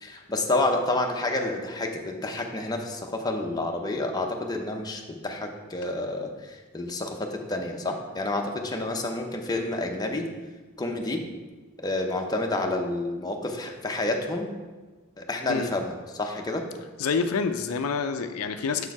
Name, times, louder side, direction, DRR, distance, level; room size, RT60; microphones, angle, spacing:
voice 1, 0.0-10.3 10.8-11.2 11.8-14.5 15.2-16.7, left 2 dB, 20° left, 2 dB, 0.6 m, -29 dB
voice 2, 17.0-18.9, left 5 dB, 70° left, 8 dB, 0.4 m, -27 dB
6.7 x 4.5 x 4.7 m, 1.3 s
head